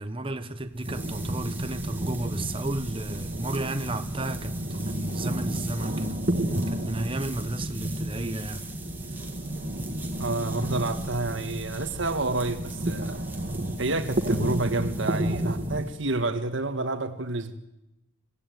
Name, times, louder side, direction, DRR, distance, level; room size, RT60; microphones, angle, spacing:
voice 1, 0.0-8.6, right 2 dB, 25° right, 1.1 m, -33 dB
sound 1, 0.6-16.3, right 3 dB, 10° right, 2.6 m, -44 dB
sound 2, 0.9-15.8, right 1 dB, 40° right, 1.8 m, -31 dB
voice 2, 10.2-13.2 13.8-17.6, right 2 dB, 65° right, 1.6 m, -29 dB
26.5 x 16.5 x 9.4 m
head